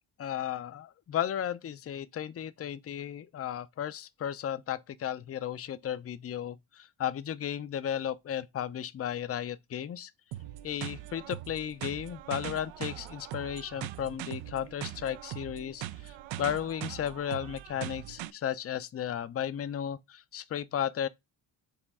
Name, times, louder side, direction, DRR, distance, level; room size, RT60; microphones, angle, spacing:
voice 1, 0.2-10.1 10.6-21.1, left 9 dB, 30° left, 0.5 m, -34 dB
sound 1, 10.3-18.3, right 13 dB, 70° right, 0.5 m, -41 dB
4.9 x 2.9 x 3.5 m
supercardioid pair, 55°, 48 cm